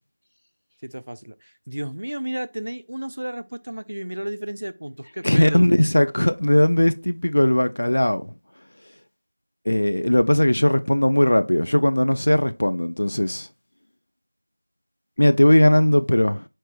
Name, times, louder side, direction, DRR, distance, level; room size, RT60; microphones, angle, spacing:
voice 1, 0.8-5.7, right 1 dB, 50° right, 0.3 m, -32 dB
voice 2, 5.2-8.3 9.7-13.5 15.2-16.5, left 1 dB, 45° left, 0.3 m, -18 dB
4.4 x 2.5 x 3.4 m
figure-of-eight pair, 175°, 0 cm